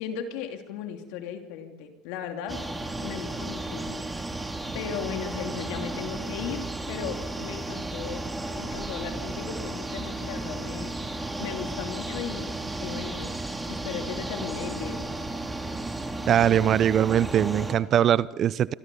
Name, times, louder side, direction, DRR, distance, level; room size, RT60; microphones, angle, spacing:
voice 1, 0.0-2.7 3.0-4.5 4.7-8.2 8.5-12.5 12.8-13.4 13.7-15.1, left 8 dB, 70° left, 5 dB, 2.9 m, -37 dB
sound 1, 2.5-17.8, right 2 dB, 10° right, 3.1 m, -34 dB
voice 2, 16.3-18.7, right 10 dB, 45° right, 19 dB, 0.6 m, -21 dB
26.5 x 25.0 x 5.5 m, 1.4 s
hypercardioid pair, 85°, 0 cm